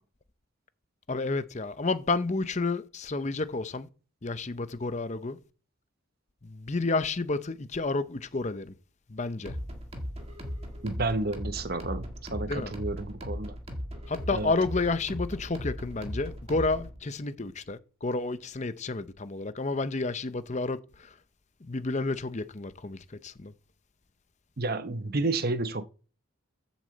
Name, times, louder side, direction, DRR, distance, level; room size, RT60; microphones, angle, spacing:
voice 1, 1.1-3.9 4.2-5.4 6.4-8.7 9.1-9.6 12.5-12.7 14.1-21.2 21.7-23.5, left 3 dB, 35° left, 0.6 m, -30 dB
sound 1, 9.5-17.0, equal, 30° right, 1.8 m, -38 dB
voice 2, 10.8-13.6 14.3-14.5 24.6-25.9, right 2 dB, 45° right, 0.8 m, -31 dB
8.1 x 7.3 x 7.6 m
head